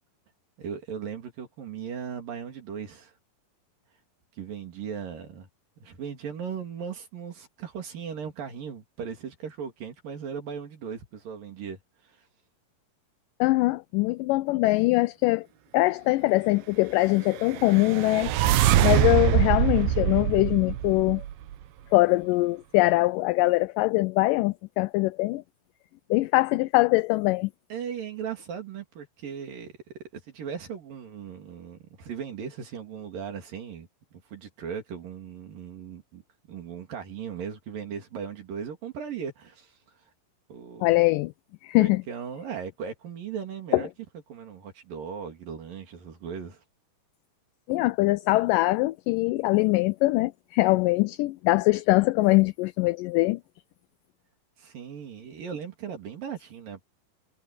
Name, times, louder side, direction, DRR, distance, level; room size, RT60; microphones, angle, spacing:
voice 1, 0.6-3.1 4.4-5.5 5.8-12.3 27.7-29.8 30.1-36.2 36.5-40.0 40.5-41.1 41.8-43.9 44.3-46.6 54.6-56.8, right 7 dB, 75° right, 4.5 m, -38 dB
voice 2, 13.4-15.5 15.7-21.2 21.9-25.4 26.1-27.5 40.8-41.3 41.6-42.0 43.7-43.8 47.7-53.4, left 21 dB, 80° left, 2.0 m, -23 dB
sound 1, 17.4-21.6, right 12 dB, 90° right, 2.8 m, -24 dB
omnidirectional pair, 4.0 m